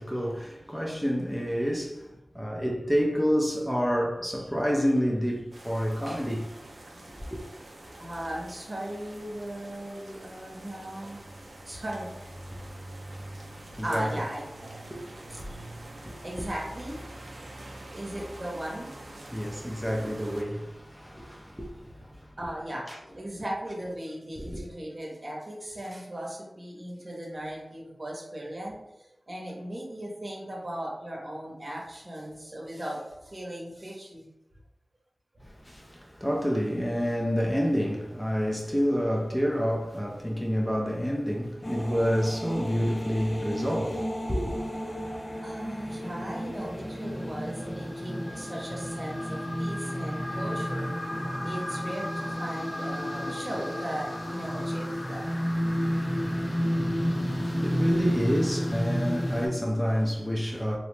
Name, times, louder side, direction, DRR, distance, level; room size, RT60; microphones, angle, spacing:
voice 1, 0.0-6.5 7.3-7.4 12.5-12.6 13.0-14.1 14.9-16.2 19.3-22.3 22.9-23.0 24.4-24.5 35.4-44.5 57.2-60.8, equal, 10° left, 0.5 m, -29 dB
sound 1, 5.5-20.4, right 1 dB, 70° right, 0.5 m, -45 dB
voice 2, 8.0-11.2 11.7-12.3 13.8-14.8 15.3-15.4 16.2-17.0 17.9-18.9 21.5-21.6 22.4-22.8 23.1-34.3 42.7-42.8 45.4-55.3, right 1 dB, 40° right, 0.8 m, -37 dB
sound 2, 41.6-59.5, equal, 50° left, 0.7 m, -31 dB
2.8 x 2.0 x 3.2 m
wide cardioid pair, 55°, 0 cm